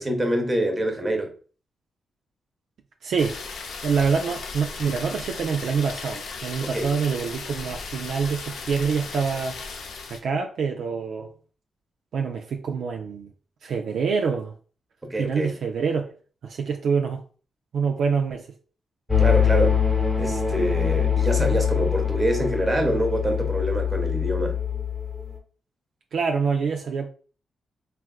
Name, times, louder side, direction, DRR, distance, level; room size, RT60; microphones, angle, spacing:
voice 1, 0.0-1.3 6.6-6.9 15.0-15.5 19.2-19.8 20.2-24.6, right 1 dB, 25° right, 0.8 m, -25 dB
voice 2, 3.0-3.4 3.8-9.6 10.1-11.3 12.1-13.3 13.6-14.5 15.2-16.1 16.4-17.2 17.7-18.5 26.1-27.1, right 5 dB, 75° right, 0.3 m, -26 dB
sound 1, 3.2-10.2, left 4 dB, 80° left, 0.4 m, -36 dB
sound 2, 19.1-25.3, left 8 dB, 15° left, 0.8 m, -23 dB
3.2 x 2.3 x 2.3 m
cardioid pair, 60°, 0 cm